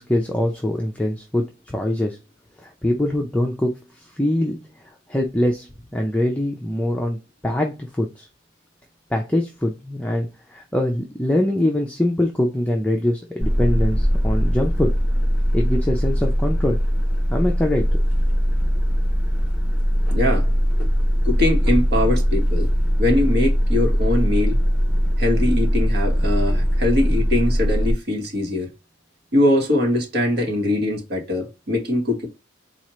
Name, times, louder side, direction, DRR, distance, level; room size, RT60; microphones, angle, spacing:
voice 1, 0.0-2.2 2.6-3.7 4.1-4.6 5.1-7.2 7.4-8.3 9.1-14.9 15.5-16.8 17.3-17.9, left 1 dB, 5° left, 0.5 m, -23 dB
sound 1, 13.4-27.9, equal, 10° right, 1.5 m, -20 dB
voice 2, 20.1-20.5 21.2-22.7 23.0-24.5 25.2-28.7 29.3-32.3, left 1 dB, 55° right, 1.3 m, -22 dB
4.3 x 2.4 x 3.0 m
head